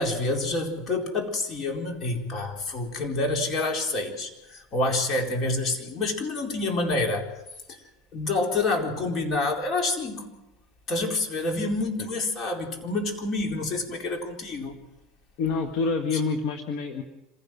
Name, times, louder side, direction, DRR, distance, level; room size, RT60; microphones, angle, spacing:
voice 1, 0.0-7.3 7.7-7.8 8.1-10.4 10.9-14.7 16.1-16.2, left 2 dB, 45° left, 2 dB, 4.3 m, -28 dB
voice 2, 15.4-17.0, left 4 dB, 60° left, 5 dB, 1.7 m, -27 dB
26.5 x 16.0 x 6.2 m, 0.97 s
supercardioid pair, 100°, 0 cm